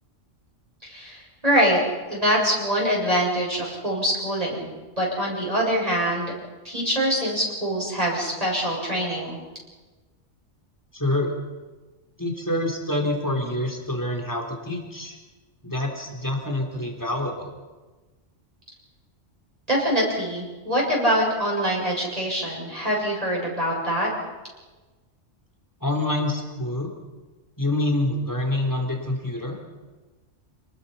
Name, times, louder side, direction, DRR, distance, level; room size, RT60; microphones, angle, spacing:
voice 1, 0.8-1.8 2.1-4.7 5.0-6.3 6.6-9.4 19.7-24.1, equal, 30° right, -4 dB, 7.0 m, -24 dB
voice 2, 10.9-11.3 12.2-15.2 15.6-17.5 25.8-26.9 27.6-29.6, left 1 dB, 15° left, 2 dB, 3.9 m, -26 dB
29.0 x 20.5 x 5.7 m, 1.2 s
omnidirectional pair, 1.2 m